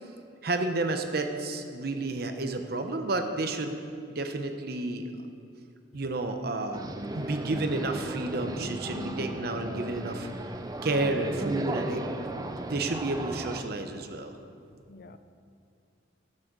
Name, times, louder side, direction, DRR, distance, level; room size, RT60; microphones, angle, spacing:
voice 1, 0.4-3.8 4.1-5.1 5.9-6.8 7.1-10.3 10.8-14.4, right 2 dB, 55° right, 6 dB, 0.8 m, -31 dB
sound 1, 6.7-13.6, right 1 dB, 20° right, 0.5 m, -36 dB
voice 2, 8.9-9.5 14.9-15.2, left 2 dB, 50° left, 11 dB, 0.5 m, -43 dB
11.5 x 7.7 x 6.1 m, 2.5 s
head